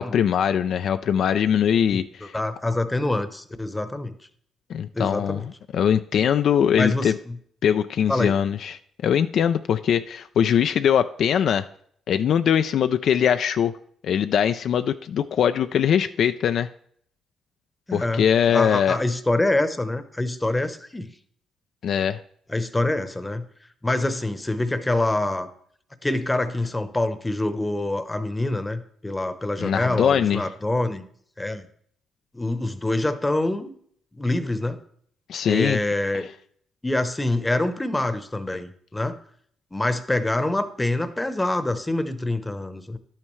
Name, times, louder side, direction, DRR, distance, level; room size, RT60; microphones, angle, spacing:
voice 1, 0.0-2.3 4.7-7.2 7.6-11.7 12.1-13.7 14.0-16.7 17.9-19.0 21.8-22.2 29.6-30.4 35.3-35.8 36.1-36.2, left 8 dB, 65° left, 10 dB, 0.3 m, -22 dB
voice 2, 1.9-4.1 4.9-5.5 6.7-7.3 8.1-8.4 17.9-18.2 18.5-21.1 22.5-23.4 23.8-25.5 26.0-31.0 31.4-31.7 32.3-33.7 34.1-34.8 35.5-36.2 36.8-39.2 39.7-43.0, left 2 dB, 15° left, 11 dB, 0.8 m, -25 dB
11.0 x 8.8 x 3.2 m, 0.63 s
cardioid pair, 90°, 0 cm